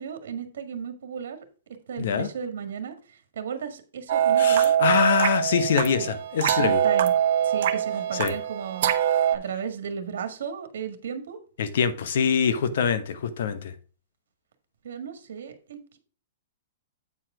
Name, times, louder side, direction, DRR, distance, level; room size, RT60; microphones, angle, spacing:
voice 1, 0.0-1.4 1.9-4.7 6.0-6.1 6.6-7.1 7.4-11.4 14.8-16.0, right 7 dB, 75° right, 1.6 m, -35 dB
voice 2, 2.0-2.3 4.4-6.8 8.2-8.3 11.6-13.7, left 7 dB, 65° left, 1.1 m, -24 dB
sound 1, 4.1-9.4, right 10 dB, 55° right, 1.1 m, -23 dB
8.4 x 4.8 x 4.8 m
hypercardioid pair, 160°, 0 cm